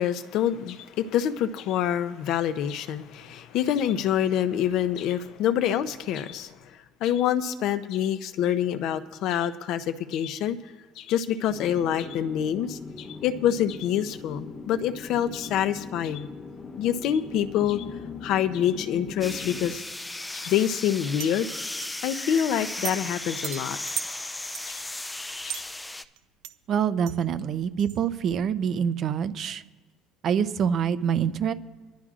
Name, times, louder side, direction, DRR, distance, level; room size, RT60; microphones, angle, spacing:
voice 1, 0.0-6.6 7.0-10.6 11.0-16.3 16.8-17.8 18.2-19.8 20.3-21.5 22.0-23.8 24.7-24.8 25.4-25.6, left 10 dB, 55° left, 11 dB, 0.6 m, -26 dB
sound 1, 11.5-19.8, left 4 dB, 25° left, 0.9 m, -40 dB
sound 2, 19.2-26.0, left 2 dB, 10° left, 0.4 m, -36 dB
various Glassy Stone Windchime sounds, 21.2-21.3 21.8-21.9 22.3-23.1 23.4-25.7 26.2-26.3 26.4-26.6 27.1-27.2 27.5-28.4, right 11 dB, 75° right, 0.6 m, -36 dB
voice 2, 26.7-29.6 30.2-31.5, right 8 dB, 40° right, 12 dB, 0.6 m, -25 dB
26.0 x 11.0 x 2.5 m, 1.4 s
cardioid pair, 155°, 0 cm